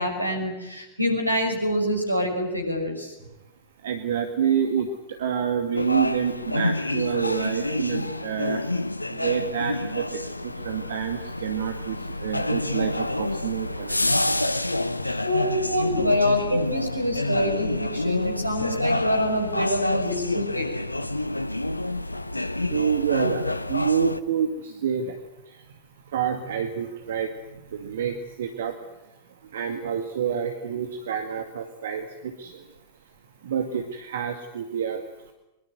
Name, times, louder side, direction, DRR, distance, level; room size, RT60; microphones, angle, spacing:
voice 1, 0.0-3.1 15.2-20.7, left 1 dB, 85° right, 6 dB, 6.0 m, -26 dB
voice 2, 3.8-8.6 9.1-14.6 15.0-15.2 22.7-25.8 26.1-28.8 29.4-32.6 33.4-35.3, right 8 dB, 60° right, 6 dB, 2.0 m, -28 dB
sound 1, 5.8-24.2, left 1 dB, 85° left, 0.9 m, -28 dB
23.0 x 22.5 x 8.0 m, 0.97 s
figure-of-eight pair, 90°, 0 cm